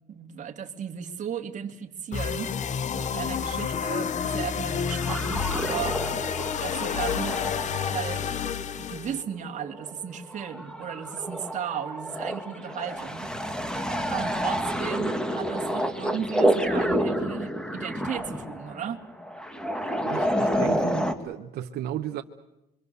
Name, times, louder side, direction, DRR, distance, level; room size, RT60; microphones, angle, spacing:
voice 1, 0.1-2.5 3.0-6.0 6.6-7.4 7.8-8.4 8.8-13.3 14.1-19.0, right 8 dB, 45° right, 5 dB, 2.5 m, -35 dB
sound 1, 2.1-9.2, left 7 dB, 45° left, 1.1 m, -29 dB
sound 2, 4.7-21.1, equal, 5° left, 2.2 m, -29 dB
voice 2, 20.0-22.2, right 12 dB, 70° right, 4 dB, 1.2 m, -34 dB
26.5 x 24.0 x 6.9 m, 0.91 s
cardioid pair, 110°, 17 cm